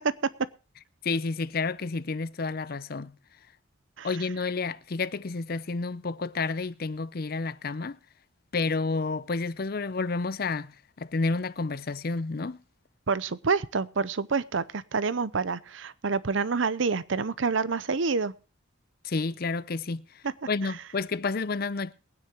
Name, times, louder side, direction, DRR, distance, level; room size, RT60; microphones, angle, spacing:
voice 1, 1.0-3.1 4.0-8.0 8.5-12.6 19.0-21.9, left 3 dB, 50° left, 0.6 m, -30 dB
voice 2, 13.1-18.3 20.2-20.3, right 4 dB, 70° right, 0.7 m, -27 dB
22.5 x 9.7 x 3.0 m
head